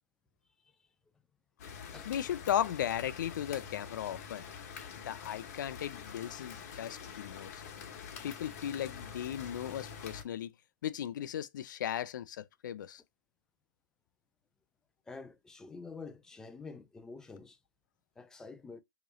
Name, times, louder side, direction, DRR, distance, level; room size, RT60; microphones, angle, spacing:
sound 1, 1.6-10.2, left 7 dB, 50° left, 1.0 m, -46 dB
voice 1, 2.1-4.5 4.9-7.6 8.2-10.5 10.8-13.0, left 10 dB, 80° left, 0.4 m, -36 dB
voice 2, 15.1-17.6 18.2-18.8, left 4 dB, 5° left, 0.3 m, -48 dB
3.0 x 3.0 x 3.9 m
supercardioid pair, 155°, 10 cm